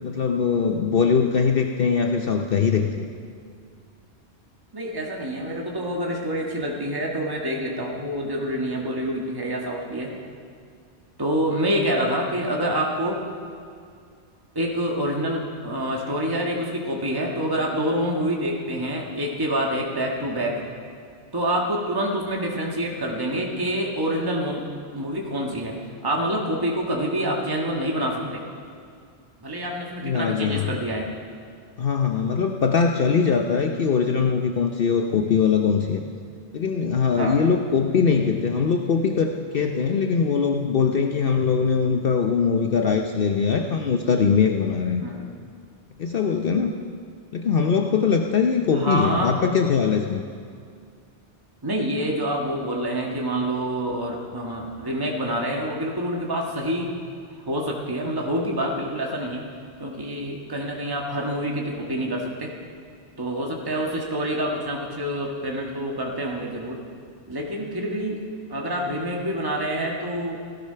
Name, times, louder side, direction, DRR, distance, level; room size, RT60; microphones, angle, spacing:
voice 1, 0.0-3.1 30.0-30.7 31.8-36.0 36.5-45.1 46.0-46.7 47.3-50.2, left 6 dB, 55° left, 4 dB, 0.9 m, -22 dB
voice 2, 4.7-10.1 11.2-13.2 14.5-20.6 21.3-24.6 24.9-25.8 26.0-28.4 29.4-31.1 37.2-37.4 45.0-45.3 48.7-49.3 51.6-56.9 57.4-59.4 59.8-62.5 63.2-66.8 67.3-68.2 68.5-70.4, equal, 20° right, -1 dB, 1.6 m, -27 dB
17.0 x 12.5 x 5.7 m, 2.3 s
omnidirectional pair, 1.2 m